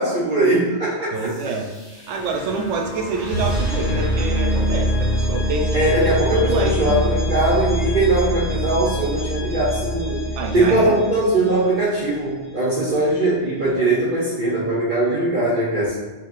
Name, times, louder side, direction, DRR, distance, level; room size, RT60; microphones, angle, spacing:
voice 1, 0.0-1.2 5.7-6.3 6.8-10.2 10.5-16.0, right 2 dB, 50° right, -7 dB, 0.9 m, -20 dB
sound 1, 1.1-12.0, equal, 75° left, 1.8 m, -24 dB
voice 2, 1.1-5.8 6.2-7.1 10.4-11.0, right 3 dB, 80° right, 2 dB, 1.0 m, -26 dB
4.4 x 3.2 x 2.5 m, 1.2 s
omnidirectional pair, 1.2 m